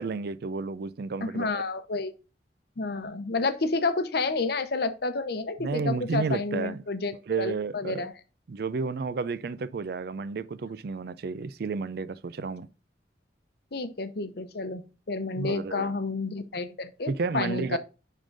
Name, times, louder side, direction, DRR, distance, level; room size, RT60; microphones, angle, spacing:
voice 1, 0.0-1.6 5.6-6.8 7.3-8.1 8.5-12.7 15.4-15.9 17.1-17.8, right 4 dB, 55° right, 0.4 m, -31 dB
voice 2, 1.2-2.1 2.8-8.1 13.7-17.8, left 3 dB, 60° left, 0.8 m, -30 dB
9.8 x 3.8 x 3.9 m
head